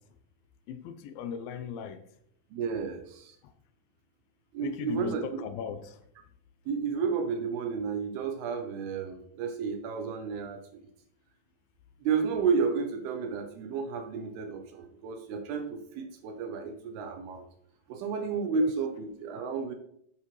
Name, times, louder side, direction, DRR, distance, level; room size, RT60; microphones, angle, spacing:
voice 1, 0.7-2.0 3.4-3.5 4.6-6.0 18.6-18.7, left 7 dB, 75° left, 2.3 m, -38 dB
voice 2, 2.5-3.4 4.5-5.4 6.7-10.8 12.0-17.5 17.9-19.7, right 5 dB, 80° right, 2.8 m, -32 dB
10.5 x 9.1 x 3.2 m
omnidirectional pair, 4.6 m